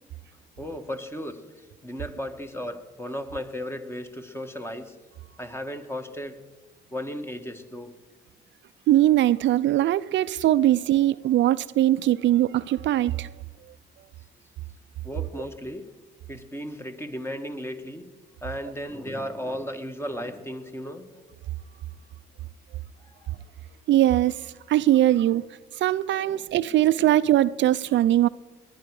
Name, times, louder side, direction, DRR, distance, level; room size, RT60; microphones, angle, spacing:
voice 1, 0.6-5.0 5.4-6.4 6.9-7.9 15.0-15.9 16.3-18.1 18.4-21.2 23.0-23.7 26.1-26.8, equal, 10° left, 1.5 m, -35 dB
voice 2, 8.9-13.3 23.9-25.4 25.8-28.3, right 13 dB, 70° right, 0.4 m, -21 dB
19.5 x 10.5 x 4.8 m
cardioid pair, 90°, 20 cm